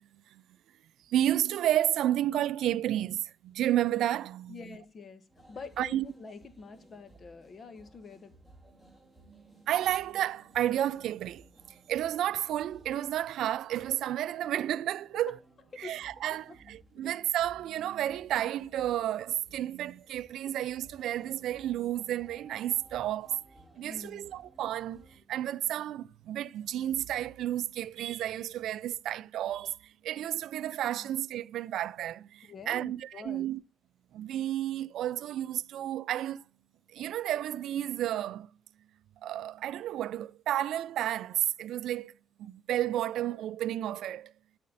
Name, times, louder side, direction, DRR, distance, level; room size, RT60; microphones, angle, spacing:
voice 1, 1.1-4.8 5.8-6.1 9.3-15.4 15.8-23.4 23.8-33.6 34.1-36.4 36.9-38.5 39.2-42.1 42.4-44.3, right 12 dB, 80° right, 0.3 m, -32 dB
voice 2, 4.5-8.4 15.8-16.0 23.8-24.3 30.9-31.1 32.5-33.5, left 4 dB, 45° left, 1.3 m, -46 dB
sound 1, 5.3-25.2, right 1 dB, 10° left, 2.5 m, -59 dB
12.5 x 4.3 x 4.0 m
cardioid pair, 90°, 0 cm